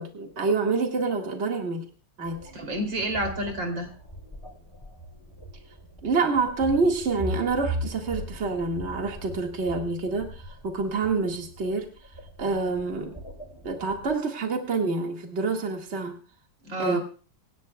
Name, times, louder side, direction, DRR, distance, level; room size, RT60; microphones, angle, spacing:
voice 1, 0.0-1.9 2.2-2.5 6.0-11.9 12.4-13.1 13.6-16.2 16.8-17.0, right 4 dB, 35° right, 2 dB, 2.1 m, -27 dB
sound 1, 2.2-14.1, right 1 dB, 15° left, 3.5 m, -39 dB
voice 2, 2.5-3.9 16.6-17.0, right 1 dB, 90° right, 4 dB, 3.8 m, -29 dB
25.0 x 11.5 x 2.3 m, 0.38 s
omnidirectional pair, 2.0 m